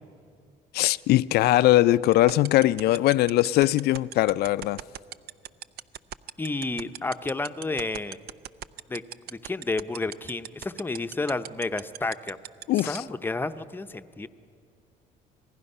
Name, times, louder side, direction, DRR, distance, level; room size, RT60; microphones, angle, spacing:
voice 1, 0.7-4.8 12.7-13.0, left 15 dB, 70° left, 0.4 m, -21 dB
sound 1, 2.1-13.0, right 12 dB, 70° right, 0.5 m, -36 dB
voice 2, 6.4-8.2 8.9-9.0 9.3-12.4 12.9-14.3, left 3 dB, 10° left, 0.7 m, -31 dB
27.0 x 19.5 x 5.5 m
cardioid pair, 110°, 17 cm